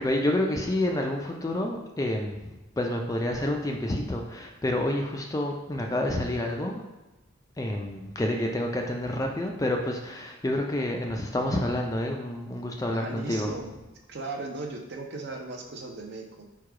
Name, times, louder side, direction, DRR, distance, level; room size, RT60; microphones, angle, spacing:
voice 1, 0.0-6.8 7.6-13.5, left 1 dB, 15° left, 1 dB, 0.4 m, -29 dB
voice 2, 12.9-13.7 14.1-16.5, right 3 dB, 55° right, 2 dB, 0.6 m, -37 dB
4.6 x 2.3 x 4.7 m, 1.1 s
head